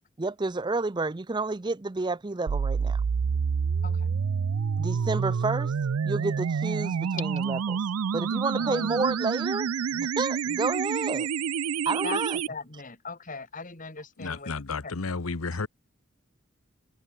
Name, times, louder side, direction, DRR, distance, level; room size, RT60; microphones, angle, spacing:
voice 1, 0.2-3.0 4.8-5.7 6.0-7.8 8.1-11.3 11.9-12.4, right 3 dB, 20° right, 0.5 m, -30 dB
sound 1, 2.5-12.5, right 6 dB, 90° right, 0.4 m, -28 dB
voice 2, 3.8-4.1 8.5-9.0 12.0-12.2 12.5-14.5 14.8-15.0, left 4 dB, 40° left, 2.7 m, -39 dB
voice 3, 14.2-15.7, left 4 dB, 85° left, 1.0 m, -32 dB
head